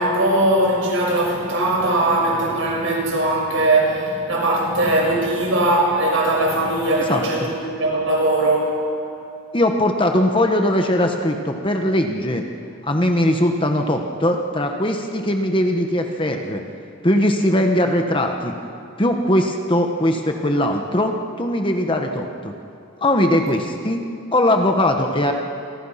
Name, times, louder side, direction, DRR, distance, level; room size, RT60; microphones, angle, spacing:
voice 1, 0.0-8.8, right 1 dB, 60° right, -1 dB, 6.6 m, -20 dB
voice 2, 9.5-12.4 12.8-16.6 17.0-18.5 19.0-22.5 23.0-24.0 24.3-25.3, left 1 dB, 25° left, 4 dB, 1.4 m, -20 dB
28.5 x 24.0 x 5.9 m, 2.4 s
head